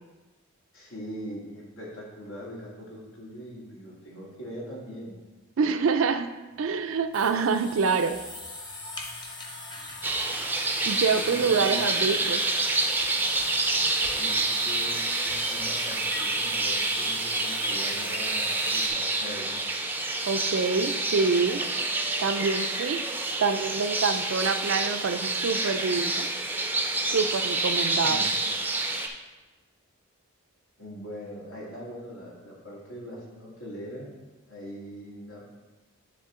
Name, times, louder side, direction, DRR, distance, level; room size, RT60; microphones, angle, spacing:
voice 1, 0.7-5.1 11.1-12.1 13.9-19.6 28.0-28.4 30.8-34.1 34.5-35.5, equal, 85° left, -5 dB, 2.3 m, -41 dB
voice 2, 5.6-6.3 6.6-8.2 10.8-12.4 20.3-21.6 22.2-23.0 23.4-26.3 27.1-28.3, right 5 dB, 65° right, 10 dB, 0.4 m, -26 dB
sound 1, 6.5-18.9, left 2 dB, 20° left, 0.8 m, -41 dB
sound 2, 10.0-29.1, right 2 dB, 10° right, 0.4 m, -28 dB
9.9 x 3.7 x 3.7 m, 1.2 s
head